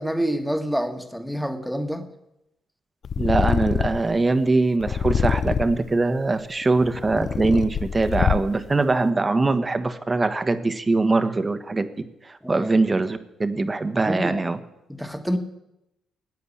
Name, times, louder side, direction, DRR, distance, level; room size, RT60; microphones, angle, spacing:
voice 1, 0.0-2.1 12.4-12.7 14.0-14.4 14.9-15.4, equal, ahead, 6 dB, 1.6 m, -27 dB
Purr, 3.0-4.1 4.8-5.9 6.6-8.7, left 7 dB, 50° left, 0.5 m, -25 dB
voice 2, 3.2-11.9 12.2-14.6, right 3 dB, 25° right, 11 dB, 1.2 m, -22 dB
15.5 x 9.3 x 8.5 m, 0.88 s
cardioid pair, 90°, 0 cm